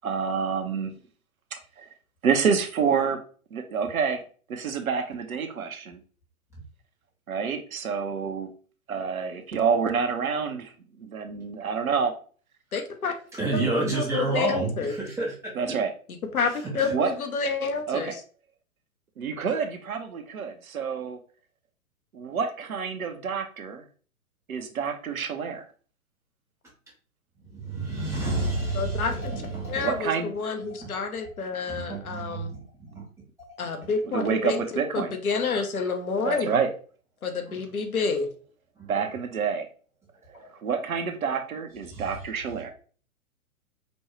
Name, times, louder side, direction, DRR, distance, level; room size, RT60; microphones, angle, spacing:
voice 1, 0.0-0.9 1.8-1.9 2.2-3.2 3.5-4.2 4.5-6.0 7.3-8.5 8.9-10.7 11.0-12.1 15.5-15.9 16.9-17.1 17.9-18.2 19.2-21.2 22.1-23.8 24.5-25.6 29.8-30.3 34.1-35.1 36.2-36.7 38.9-39.7 40.3-42.7, right 6 dB, 70° right, 5 dB, 0.8 m, -28 dB
voice 2, 12.7-13.1 13.5-14.9 16.3-18.2 28.7-29.3 29.7-32.5 33.6-34.6 34.9-36.6 37.2-38.3 40.3-40.5, left 5 dB, 70° left, 5 dB, 0.9 m, -29 dB
voice 3, 13.4-14.7 15.0-15.3 27.5-29.9 30.7-30.9 31.7-32.6 32.9-33.0 33.4-33.7 37.5-37.6 38.8-38.9 41.9-42.0, right 3 dB, ahead, -30 dB, 0.3 m, -29 dB
5.2 x 2.3 x 3.1 m, 0.41 s
figure-of-eight pair, 115°, 44 cm